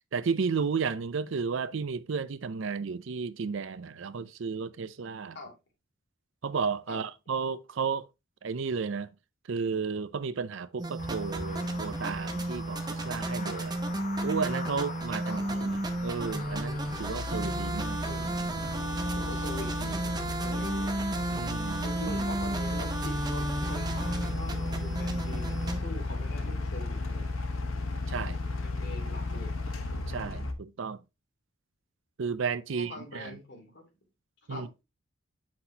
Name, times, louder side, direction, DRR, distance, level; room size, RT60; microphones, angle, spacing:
voice 1, 0.1-5.4 6.4-8.1 8.4-9.1 9.5-13.8 14.2-15.4 15.6-18.0 21.3-21.8 28.1-28.4 30.1-31.0 32.2-33.4 34.5-34.7, right 5 dB, 70° right, 0.5 m, -33 dB
sound 1, 10.8-25.8, right 2 dB, 20° right, 0.7 m, -33 dB
sound 2, 11.0-18.8, left 3 dB, 40° left, 1.0 m, -43 dB
voice 2, 15.2-15.7 18.0-18.4 19.1-20.1 20.4-20.9 21.8-27.3 28.6-29.6 32.7-33.9 34.5-34.7, left 1 dB, 55° left, 2.5 m, -43 dB
sound 3, 15.4-30.5, left 3 dB, 80° left, 1.1 m, -35 dB
7.8 x 5.9 x 2.8 m
head